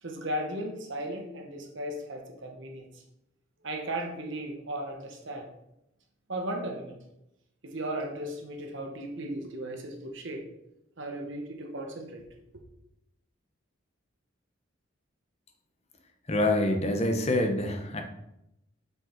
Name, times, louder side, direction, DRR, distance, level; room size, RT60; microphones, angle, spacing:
voice 1, 0.0-2.9 3.6-5.5 6.3-7.0 7.6-10.5 11.0-12.2, right 1 dB, 60° right, 2 dB, 1.1 m, -36 dB
voice 2, 16.3-18.0, left 1 dB, 30° left, 4 dB, 0.9 m, -26 dB
6.2 x 5.4 x 4.5 m, 0.84 s
head